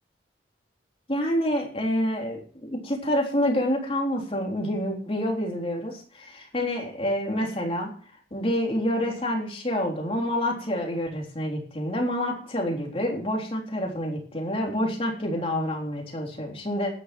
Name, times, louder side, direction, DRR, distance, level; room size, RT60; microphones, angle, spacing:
voice 1, 1.1-7.9 8.3-16.9, equal, 35° left, 0 dB, 3.5 m, -27 dB
13.0 x 9.9 x 6.0 m, 0.44 s
head